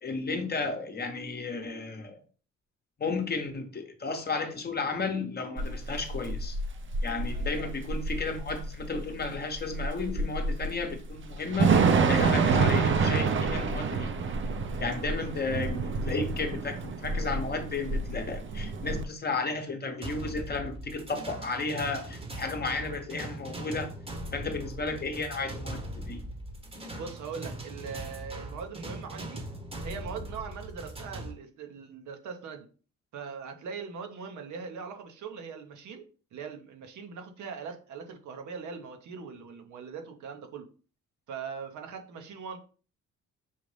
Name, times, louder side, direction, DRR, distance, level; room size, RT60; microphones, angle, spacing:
voice 1, 0.0-2.2 3.0-6.6 7.0-14.1 14.8-23.9 24.3-26.2, left 3 dB, 35° left, 0.9 m, -33 dB
Thunder / Rain, 5.6-19.0, right 4 dB, 40° right, 0.6 m, -28 dB
voice 2, 7.3-7.7 24.3-24.5 27.0-29.4 29.8-32.7 33.1-36.0 36.3-40.6 41.3-42.6, right 6 dB, 75° right, 1.0 m, -41 dB
sound 1, 20.0-31.3, right 1 dB, 20° right, 0.9 m, -40 dB
5.6 x 2.5 x 3.3 m
cardioid pair, 90°, 30 cm